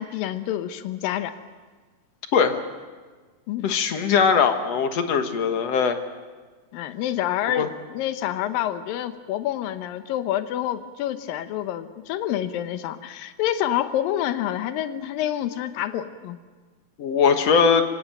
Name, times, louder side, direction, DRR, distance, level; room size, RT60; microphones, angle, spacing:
voice 1, 0.0-1.4 3.5-3.7 6.7-16.4, left 12 dB, 85° left, 10 dB, 2.7 m, -28 dB
voice 2, 2.3-2.6 3.6-6.0 7.6-7.7 17.0-17.8, left 6 dB, 55° left, 7 dB, 2.2 m, -20 dB
24.0 x 18.0 x 9.2 m, 1.4 s
omnidirectional pair, 4.0 m